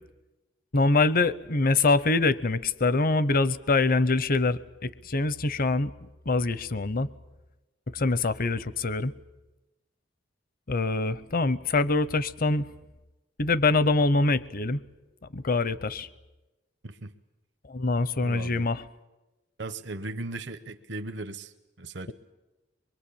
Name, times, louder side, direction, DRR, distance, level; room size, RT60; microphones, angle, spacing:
voice 1, 0.7-5.9 6.3-7.1 7.9-9.1 10.7-12.7 13.4-14.8 15.3-16.1 17.7-18.8, left 3 dB, 50° left, 17 dB, 0.8 m, -24 dB
voice 2, 16.8-17.1 18.2-18.7 19.6-22.1, right 2 dB, 70° right, 8 dB, 1.0 m, -37 dB
24.5 x 23.0 x 8.6 m, 1.1 s
head